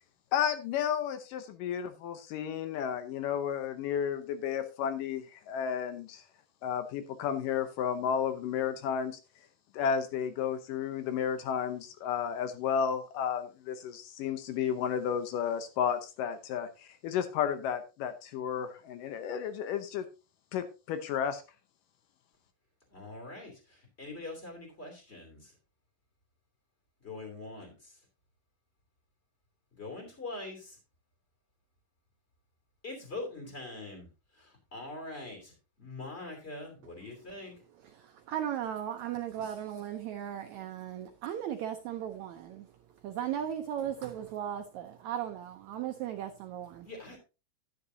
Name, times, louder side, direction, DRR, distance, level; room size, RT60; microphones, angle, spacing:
voice 1, 0.3-6.2 6.6-9.2 9.7-20.1 20.5-21.4, left 8 dB, 75° left, 9 dB, 2.4 m, -32 dB
voice 2, 22.9-25.5 27.0-28.0 29.7-30.8 32.8-34.1 34.3-35.5 35.8-37.6 46.8-47.2, left 2 dB, 20° left, 2 dB, 2.8 m, -43 dB
voice 3, 37.9-42.7 43.0-46.9, right 10 dB, 80° right, 6 dB, 1.7 m, -37 dB
10.5 x 9.6 x 2.7 m, 0.30 s
omnidirectional pair, 4.0 m